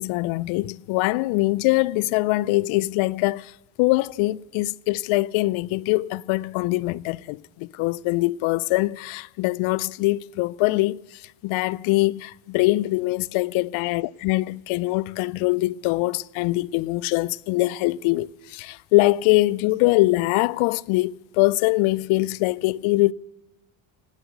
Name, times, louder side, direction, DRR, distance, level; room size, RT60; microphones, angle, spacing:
voice 1, 0.0-23.1, left 20 dB, 75° left, 0.5 m, -23 dB
19.0 x 9.0 x 7.9 m
cardioid pair, 95°, 49 cm